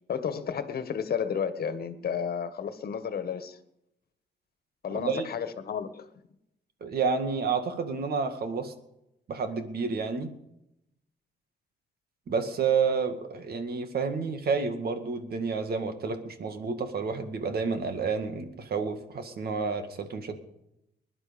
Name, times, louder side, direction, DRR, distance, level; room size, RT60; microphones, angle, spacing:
voice 1, 0.1-3.6 4.8-6.1, left 7 dB, 60° left, 1.6 m, -32 dB
voice 2, 4.9-5.3 6.8-8.7 9.3-10.3 12.3-20.3, right 5 dB, 60° right, 2.1 m, -30 dB
21.0 x 11.0 x 5.3 m
wide cardioid pair, 140°, 18 cm